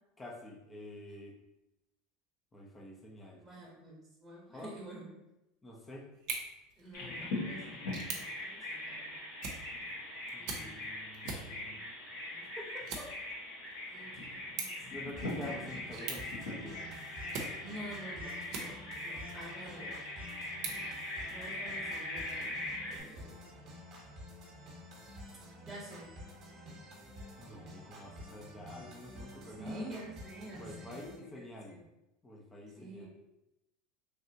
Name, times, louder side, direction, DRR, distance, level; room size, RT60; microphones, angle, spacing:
voice 1, 0.2-1.3 2.5-3.4 4.5-4.7 5.6-6.1 10.3-11.9 12.6-13.1 13.8-14.0 14.9-16.8 27.4-29.9 30.5-31.8 32.2-33.1, left 1 dB, 20° left, -1 dB, 0.7 m, -48 dB
voice 2, 3.4-5.2 6.8-7.8 8.1-9.2 10.4-10.8 11.5-11.8 12.2-12.5 13.9-14.8 17.6-20.0 21.3-22.5 22.9-23.4 25.6-26.1 29.6-31.8 32.8-33.1, right 1 dB, 10° right, -6 dB, 1.0 m, -48 dB
sound 1, 6.1-19.1 19.6-21.7, right 4 dB, 60° right, 0.7 m, -46 dB
Bird vocalization bird call bird song, 6.9-23.0, left 1 dB, 70° left, 1.4 m, -41 dB
sound 2, 15.2-31.2, equal, 45° right, 1.1 m, -50 dB
3.3 x 2.6 x 2.7 m, 0.92 s
hypercardioid pair, 85°, 0 cm